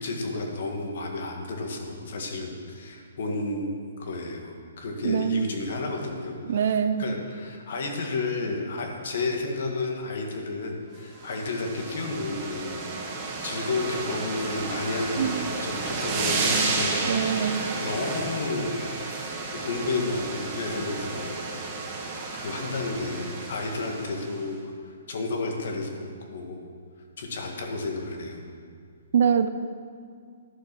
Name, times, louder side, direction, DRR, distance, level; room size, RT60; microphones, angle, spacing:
voice 1, 0.0-3.7 4.0-12.8 13.2-15.3 15.6-18.7 19.5-21.5 22.3-24.6 24.8-26.6 27.2-28.6, left 3 dB, 55° left, 2 dB, 1.8 m, -32 dB
voice 2, 5.0-5.5 6.4-7.1 15.2-15.5 17.1-17.6 29.1-29.5, right 7 dB, 55° right, 11 dB, 0.6 m, -24 dB
sound 1, 11.2-24.4, right 3 dB, 25° right, 1.4 m, -31 dB
11.5 x 6.6 x 6.1 m, 2.2 s
hypercardioid pair, 165°, 0 cm